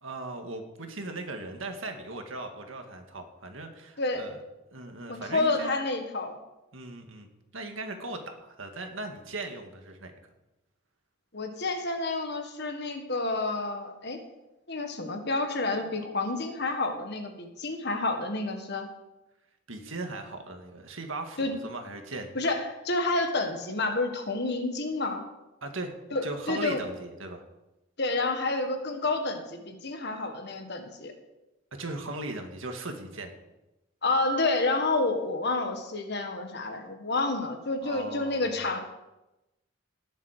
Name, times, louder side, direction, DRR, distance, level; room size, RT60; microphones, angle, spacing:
voice 1, 0.0-4.4 4.7-5.8 6.7-7.3 7.5-10.1 19.7-22.3 25.6-25.9 26.2-27.4 31.8-33.3 37.8-38.7, right 2 dB, 80° right, 4 dB, 1.9 m, -38 dB
voice 2, 5.1-6.4 11.3-14.2 14.7-18.8 21.4-21.5 22.3-25.2 26.1-26.8 28.0-31.1 34.0-38.8, left 2 dB, 55° left, 5 dB, 1.7 m, -29 dB
18.0 x 7.3 x 5.1 m, 0.99 s
head